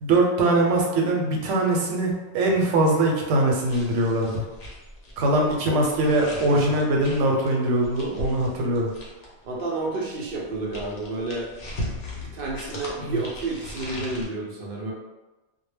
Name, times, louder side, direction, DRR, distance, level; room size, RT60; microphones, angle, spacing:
voice 1, 0.0-4.4 5.2-8.9 13.0-13.1, right 2 dB, 90° right, 0 dB, 0.9 m, -22 dB
sound 1, 3.7-9.4 10.3-14.2, left 1 dB, 50° left, 0.6 m, -38 dB
voice 2, 9.4-11.5 12.1-14.9, right 2 dB, 60° right, -2 dB, 0.6 m, -30 dB
2.1 x 2.0 x 3.2 m, 1.1 s
omnidirectional pair, 1.2 m